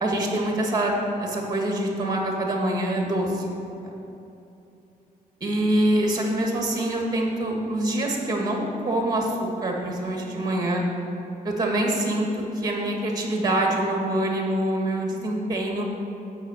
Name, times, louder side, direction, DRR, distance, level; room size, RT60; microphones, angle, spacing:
voice 1, 0.0-0.9 1.2-3.5 3.8-3.9 5.4-10.8 11.4-15.8, right 1 dB, 25° right, 0 dB, 1.5 m, -25 dB
7.9 x 5.5 x 6.5 m, 2.9 s
cardioid pair, 115°, 16 cm